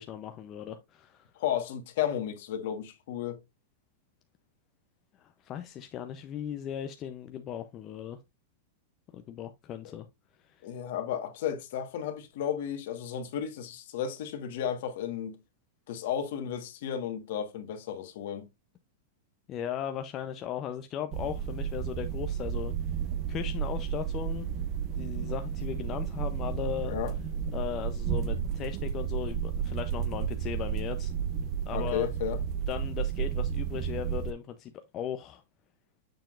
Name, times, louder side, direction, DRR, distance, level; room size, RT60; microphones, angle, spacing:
voice 1, 0.0-1.2 5.2-8.2 9.1-10.1 10.5-10.6 19.5-22.7 23.3-24.5 24.9-27.0 27.5-31.1 31.7-32.1 32.7-35.4, left 9 dB, 30° left, 0.5 m, -37 dB
voice 2, 1.3-3.4 9.8-9.9 10.6-15.4 15.9-18.5 26.9-27.1 31.7-32.4, left 9 dB, 65° left, 1.3 m, -33 dB
sound 1, 21.1-34.3, right 8 dB, 40° right, 0.6 m, -32 dB
6.8 x 5.7 x 2.4 m
hypercardioid pair, 135°, 0 cm